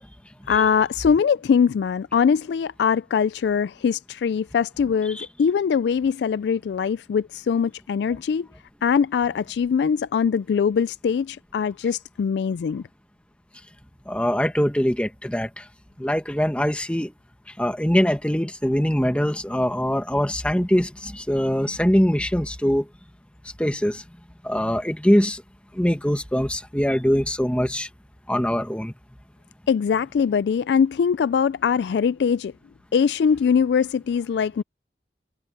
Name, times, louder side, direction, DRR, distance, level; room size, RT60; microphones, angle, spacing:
voice 1, 0.5-8.5 8.8-12.8 29.7-32.5 32.9-34.6, left 6 dB, 75° left, 0.3 m, -22 dB
voice 2, 14.1-15.6 16.0-17.1 17.6-22.8 23.6-24.0 24.4-25.4 25.7-27.9 28.3-28.9, equal, 5° left, 1.2 m, -22 dB
head